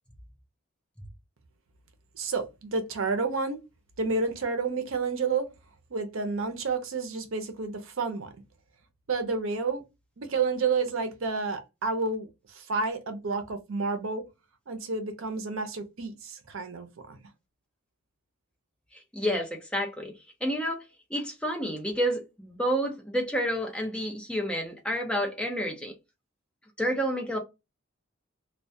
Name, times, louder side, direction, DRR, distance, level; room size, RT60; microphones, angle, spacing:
voice 1, 2.2-3.6 4.0-5.5 5.9-8.3 9.1-9.8 10.2-14.2 14.7-17.2, right 4 dB, 75° right, 0.6 m, -30 dB
voice 2, 19.1-20.1 20.4-20.8 21.1-25.9 26.8-27.4, equal, 5° left, 0.6 m, -29 dB
2.2 x 2.1 x 2.6 m
head